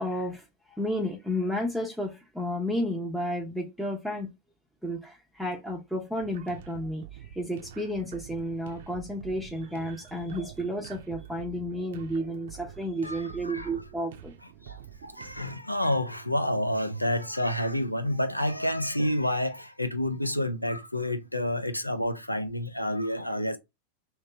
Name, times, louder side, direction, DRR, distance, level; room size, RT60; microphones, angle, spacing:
voice 1, 0.0-4.3 4.8-14.3, equal, ahead, 0.6 m, -32 dB
sound 1, 6.2-15.5, right 10 dB, 60° right, 0.6 m, -47 dB
voice 2, 13.0-13.7 14.6-23.6, left 1 dB, 85° left, 0.4 m, -29 dB
2.9 x 2.7 x 3.3 m
figure-of-eight pair, 90°, 0 cm